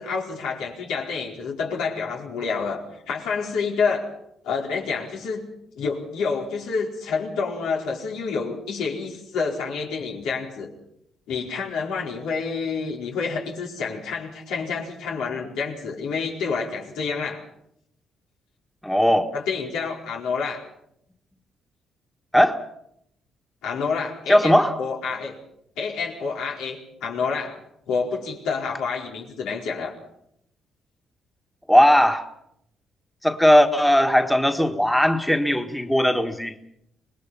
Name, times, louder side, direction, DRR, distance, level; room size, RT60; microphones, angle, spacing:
voice 1, 0.0-4.1 4.4-5.5 5.8-10.7 11.3-17.5 19.3-20.6 23.6-25.4 25.8-27.6 27.9-29.9, left 5 dB, 90° left, -1 dB, 4.6 m, -28 dB
voice 2, 18.8-19.3 22.3-22.6 24.3-24.8 31.7-32.2 33.2-36.6, equal, 5° left, 5 dB, 1.7 m, -18 dB
26.0 x 20.0 x 5.8 m, 0.77 s
cardioid pair, 90°, 0 cm